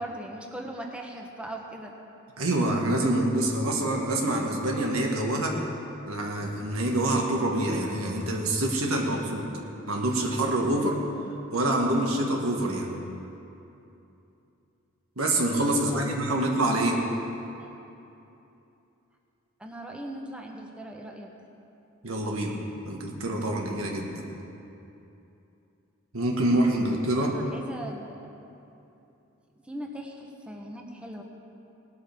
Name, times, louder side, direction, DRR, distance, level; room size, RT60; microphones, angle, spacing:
voice 1, 0.0-1.9 15.7-17.1 17.6-17.8 19.6-21.3 27.2-28.3 29.6-31.2, right 1 dB, 5° right, 0 dB, 1.0 m, -40 dB
voice 2, 2.4-5.6 6.1-9.5 9.9-11.0 11.5-12.9 15.2-17.0 22.0-22.6 22.9-24.2 26.1-27.3, right 1 dB, 90° right, 0 dB, 1.8 m, -26 dB
18.5 x 12.5 x 3.6 m, 2.8 s
head